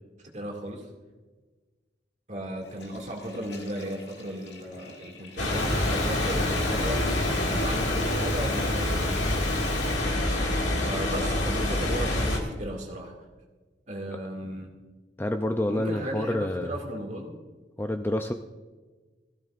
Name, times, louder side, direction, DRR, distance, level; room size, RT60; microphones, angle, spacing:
voice 1, 0.3-0.9 2.3-9.5 10.7-13.1 13.9-14.7 15.7-17.3, equal, 40° right, 0 dB, 2.2 m, -35 dB
Water tap faucet / Toilet flush, 2.5-10.5, left 4 dB, 70° left, 1.7 m, -45 dB
sound 1, 5.4-12.4, left 1 dB, 90° left, 2.1 m, -26 dB
voice 2, 15.2-16.7 17.8-18.3, left 1 dB, 10° left, 6 dB, 0.4 m, -28 dB
16.0 x 15.5 x 2.5 m, 1.3 s
head